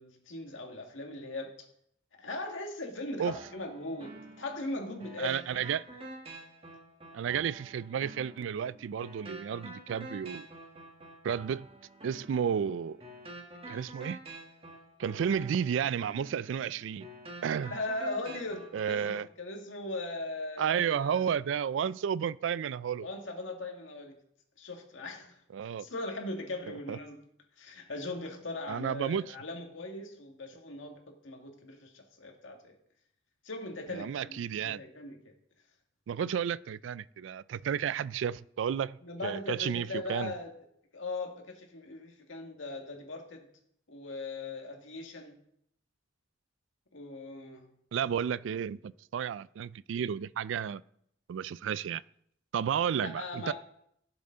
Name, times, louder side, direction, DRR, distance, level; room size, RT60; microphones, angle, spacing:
voice 1, 0.0-1.5 2.2-5.4 17.7-21.4 23.0-24.1 24.6-25.4 25.8-27.2 27.6-32.7 33.4-35.3 39.0-40.5 40.9-43.5 43.9-45.4 46.9-47.7 53.0-53.5, left 2 dB, 85° left, 1.9 m, -39 dB
sound 1, 3.3-19.2, right 1 dB, 30° right, 1.7 m, -48 dB
voice 2, 5.2-5.8 7.1-10.5 11.2-11.7 12.0-13.0 13.7-14.2 15.0-17.1 17.4-17.7 18.7-19.3 20.6-23.1 25.5-25.9 26.9-27.0 28.7-29.4 33.9-34.8 36.1-40.3 47.9-50.8 51.3-52.0 52.5-53.5, right 8 dB, 75° right, 0.3 m, -32 dB
16.0 x 7.1 x 3.8 m
head